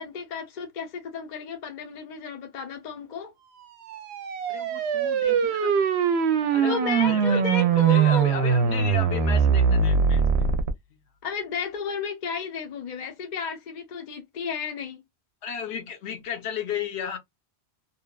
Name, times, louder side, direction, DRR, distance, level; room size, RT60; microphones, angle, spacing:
voice 1, 0.0-3.3 6.4-8.4 11.2-15.0, left 5 dB, 50° left, 0.6 m, -33 dB
sound 1, 3.8-10.7, right 6 dB, 75° right, 0.8 m, -22 dB
voice 2, 4.5-6.1 6.4-7.4 7.7-10.4 15.4-17.2, left 7 dB, 75° left, 1.0 m, -35 dB
2.8 x 2.2 x 2.2 m
omnidirectional pair, 1.1 m